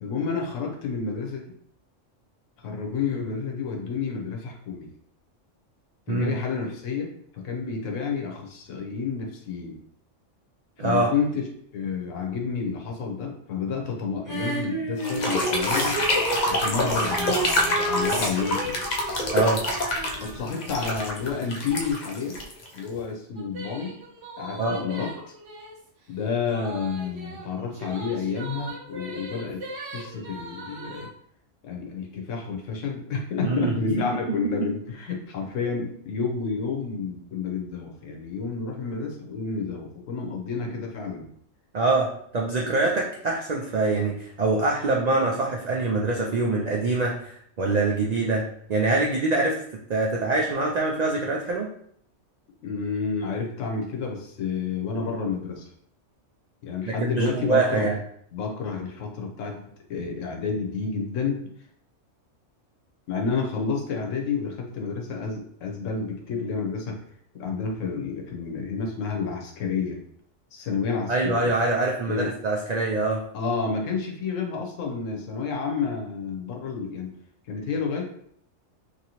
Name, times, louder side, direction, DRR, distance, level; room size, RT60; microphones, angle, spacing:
voice 1, 0.0-1.5 2.6-4.9 6.1-9.8 10.8-16.0 16.5-18.8 20.2-22.4 22.7-24.0 24.4-25.3 26.1-29.6 29.9-31.1 31.6-41.3 52.6-55.7 56.6-57.9 58.3-61.5 63.1-67.0 67.4-70.0 70.5-71.5 72.1-72.3 73.3-77.1 77.5-78.0, left 5 dB, 90° left, 1 dB, 1.1 m, -30 dB
voice 2, 10.8-11.1 19.3-19.6 24.6-24.8 33.4-33.9 34.4-34.5 41.7-49.6 49.9-51.7 57.0-58.0 71.1-73.2, right 3 dB, 85° right, -2 dB, 0.3 m, -24 dB
Female singing, 14.3-20.9 21.2-21.3, right 2 dB, 20° right, 0.8 m, -31 dB
sound 1, 15.0-23.0, left 1 dB, 55° left, 0.5 m, -27 dB
sound 2, 23.4-25.9 26.5-31.1, right 2 dB, 65° right, 1.0 m, -40 dB
3.0 x 2.7 x 2.9 m, 0.65 s
omnidirectional pair, 1.3 m